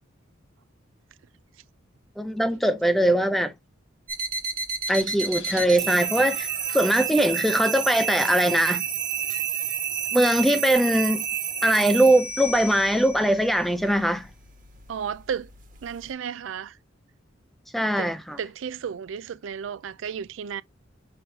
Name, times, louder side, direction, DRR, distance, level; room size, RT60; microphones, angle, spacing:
voice 1, 2.2-3.5 4.9-8.9 10.1-11.2 11.6-14.3 17.7-18.4, right 1 dB, ahead, 0.5 m, -21 dB
sound 1, 4.1-16.1, right 7 dB, 45° right, 1.3 m, -30 dB
sound 2, 4.9-8.6, left 3 dB, 85° left, 1.5 m, -47 dB
Chink clink, 5.5-5.8 6.2-6.7 7.1-8.6 9.2-9.9, right 1 dB, 25° left, 3.3 m, -50 dB
voice 2, 14.9-15.5 15.8-16.7 18.0-18.1 18.4-20.6, right 7 dB, 85° right, 0.4 m, -33 dB
6.0 x 3.1 x 2.8 m
head